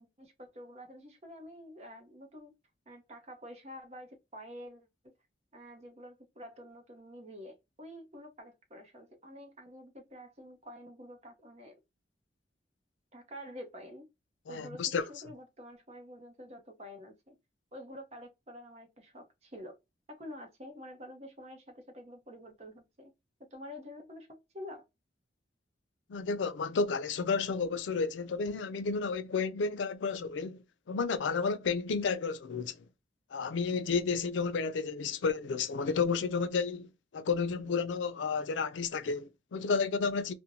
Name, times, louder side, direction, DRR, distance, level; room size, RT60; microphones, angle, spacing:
voice 1, 0.0-2.5 2.9-5.1 5.5-11.8 13.1-14.1 14.5-17.4 17.7-19.8 20.1-23.1 23.5-24.9, equal, 35° right, 0.7 m, -48 dB
voice 2, 14.5-15.0 26.1-30.6 30.9-32.8 33.3-36.9 37.1-40.3, left 5 dB, 85° left, 0.4 m, -31 dB
2.5 x 2.1 x 2.8 m
head